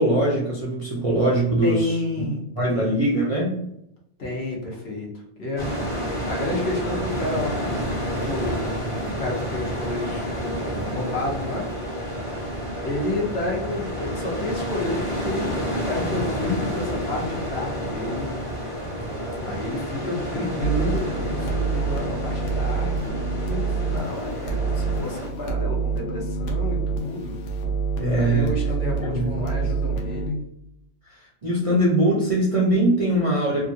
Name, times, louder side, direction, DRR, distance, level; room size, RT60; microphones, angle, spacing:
voice 1, 0.0-2.3 2.5-3.5 28.0-28.5 29.0-29.7 31.0-33.7, right 1 dB, 45° right, -4 dB, 0.4 m, -22 dB
voice 2, 1.6-3.0 4.2-5.1 5.4-5.7 6.3-7.8 8.2-8.6 9.2-10.3 10.9-11.7 12.8-15.5 15.9-18.3 19.4-27.4 28.2-30.4, left 2 dB, 60° left, -2 dB, 1.1 m, -30 dB
sound 1, 5.6-25.3, equal, 30° left, 0.9 m, -30 dB
sound 2, 20.6-30.3, right 4 dB, 85° left, 1.0 m, -27 dB
2.9 x 2.4 x 2.6 m, 0.80 s
omnidirectional pair, 1.3 m